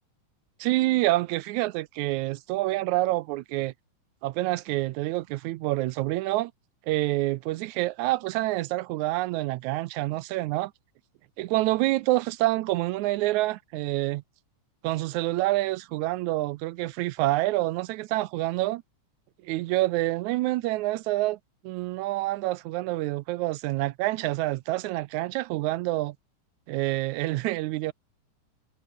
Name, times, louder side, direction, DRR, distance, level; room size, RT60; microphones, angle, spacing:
voice 1, 0.6-3.7 4.2-6.5 6.9-10.7 11.4-14.2 14.8-18.8 19.4-21.4 21.6-26.2 26.7-27.9, right 18 dB, 80° right, 1.9 m, -27 dB
omnidirectional pair, 3.6 m